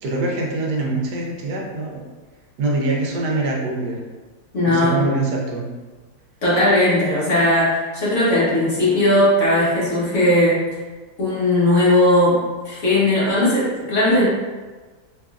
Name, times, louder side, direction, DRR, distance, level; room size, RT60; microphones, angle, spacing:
voice 1, 0.0-2.0 2.6-4.0 4.6-5.7, right 2 dB, 70° right, -2 dB, 1.2 m, -24 dB
voice 2, 4.5-5.0 6.4-10.6 11.2-12.4 12.6-14.3, left 1 dB, 45° left, -8 dB, 1.2 m, -17 dB
3.5 x 3.4 x 2.4 m, 1.3 s
omnidirectional pair, 2.0 m